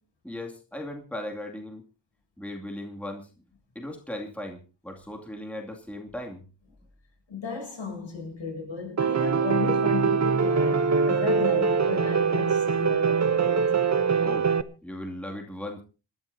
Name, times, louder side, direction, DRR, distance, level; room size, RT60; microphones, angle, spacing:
voice 1, 0.2-1.8 2.4-3.3 3.7-6.4 14.2-14.5 14.8-15.8, left 1 dB, 5° left, 2.4 m, -37 dB
voice 2, 7.3-13.6, left 5 dB, 75° left, 7.8 m, -34 dB
Piano, 9.0-14.6, right 5 dB, 35° right, 0.9 m, -23 dB
28.0 x 12.5 x 2.8 m
wide cardioid pair, 105°, 46 cm